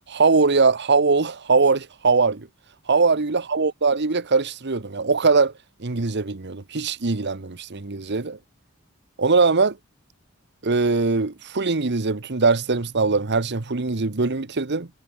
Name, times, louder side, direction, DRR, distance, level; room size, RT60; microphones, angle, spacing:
voice 1, 0.1-2.5 2.9-5.5 5.8-8.4 9.2-9.8 10.6-14.9, right 4 dB, 55° right, 1.1 m, -21 dB
head